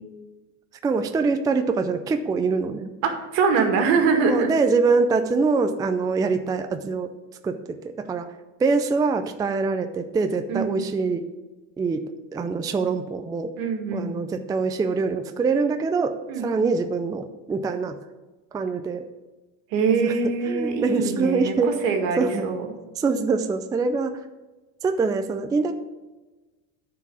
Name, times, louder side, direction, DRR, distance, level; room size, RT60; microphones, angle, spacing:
voice 1, 0.8-2.9 4.3-7.1 7.4-8.3 8.6-11.2 11.8-12.0 12.3-13.5 13.9-16.2 16.4-18.0 18.5-19.1 20.0-20.1 20.5-22.5 23.0-24.1 24.8-25.7, right 4 dB, 10° right, 7 dB, 0.4 m, -24 dB
voice 2, 3.0-4.5 10.5-10.7 13.6-14.1 16.3-16.4 19.7-21.5 21.8-22.7, right 5 dB, 70° right, 4 dB, 2.1 m, -23 dB
9.6 x 4.8 x 7.0 m, 1.2 s
supercardioid pair, 135°, 36 cm